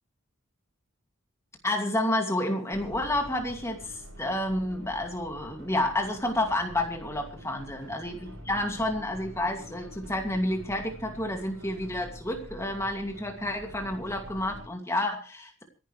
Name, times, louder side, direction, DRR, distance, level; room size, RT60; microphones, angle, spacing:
voice 1, 1.6-8.2 8.4-15.6, left 1 dB, 15° left, 3 dB, 2.5 m, -30 dB
sound 1, 2.7-14.7, equal, 70° right, 5.6 m, -46 dB
26.5 x 11.0 x 3.3 m, 0.35 s
head